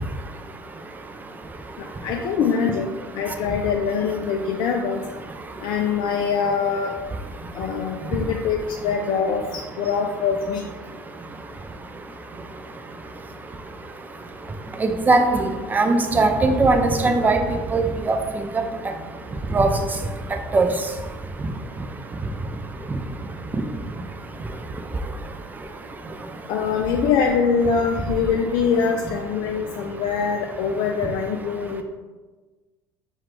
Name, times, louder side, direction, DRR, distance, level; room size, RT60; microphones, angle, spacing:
voice 1, 1.8-2.9 3.1-5.0 5.6-6.9 7.5-8.6 8.8-10.7 26.5-31.8, left 6 dB, 45° left, 2 dB, 0.4 m, -23 dB
voice 2, 14.8-17.4 17.7-18.2 19.5-19.7 20.5-20.7, right 3 dB, 15° right, 5 dB, 0.4 m, -19 dB
5.7 x 2.4 x 3.1 m, 1.3 s
figure-of-eight pair, 65°, 11 cm